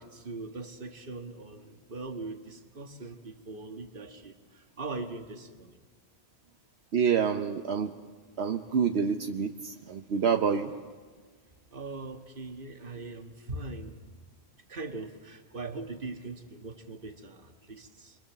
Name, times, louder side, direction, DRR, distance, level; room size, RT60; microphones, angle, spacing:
voice 1, 0.0-5.8 11.7-14.0 14.7-18.2, right 3 dB, 55° right, 6 dB, 1.7 m, -41 dB
voice 2, 6.9-7.9 8.4-10.7, right 6 dB, 75° right, 5 dB, 1.1 m, -27 dB
25.5 x 23.0 x 7.2 m, 1.5 s
omnidirectional pair, 1.1 m